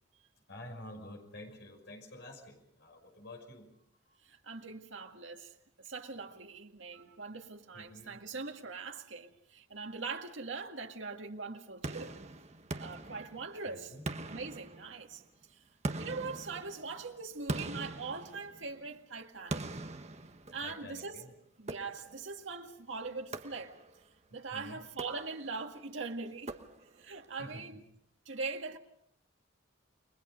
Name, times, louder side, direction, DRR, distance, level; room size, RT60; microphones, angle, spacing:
voice 1, 0.5-3.7 4.1-4.2 7.7-8.2 13.7-14.0 20.5-21.3 24.3-24.8 27.4-27.8, left 1 dB, 60° left, 6.0 m, -49 dB
voice 2, 4.2-12.2 12.8-13.9 14.3-15.2 15.5-15.6 16.0-19.6 20.5-21.3 21.6-23.8 24.3-26.5 27.0-27.8 28.3-28.8, right 4 dB, 85° right, 2.1 m, -42 dB
sound 1, 11.8-13.6 14.1-15.2 15.8-18.9 19.5-20.9 21.7-22.3 23.3-24.0 24.9-25.6 26.5-27.1, right 2 dB, 35° right, 1.2 m, -42 dB
30.0 x 22.0 x 5.2 m
head